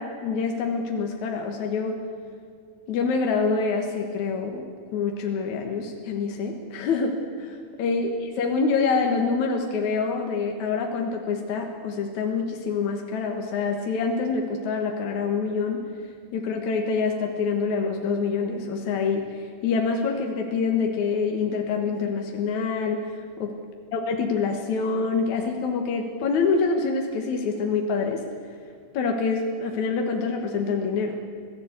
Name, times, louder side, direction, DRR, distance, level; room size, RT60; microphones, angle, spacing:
voice 1, 0.0-2.1 2.9-4.7 4.9-15.9 16.3-23.5 23.9-28.2 28.9-31.2, left 4 dB, 60° left, 2 dB, 2.5 m, -26 dB
26.0 x 17.0 x 8.2 m, 2.2 s
omnidirectional pair, 4.3 m